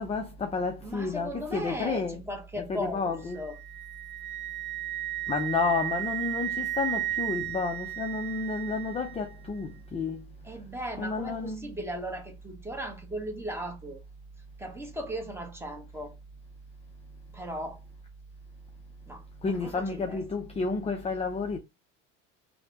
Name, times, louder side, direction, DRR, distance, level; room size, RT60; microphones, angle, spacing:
voice 1, 0.0-2.2 2.9-3.4 5.3-10.2 11.0-11.7 19.4-21.6, left 4 dB, 15° left, 0.4 m, -31 dB
voice 2, 0.8-3.6 5.6-6.0 10.4-14.0 14.6-16.2 17.3-17.8 19.1-20.2, equal, 5° right, 0.8 m, -37 dB
Wind instrument woodwind instrument, 3.3-9.2, right 14 dB, 30° right, 0.6 m, -34 dB
3.1 x 2.1 x 2.9 m
hypercardioid pair, 80°, 41 cm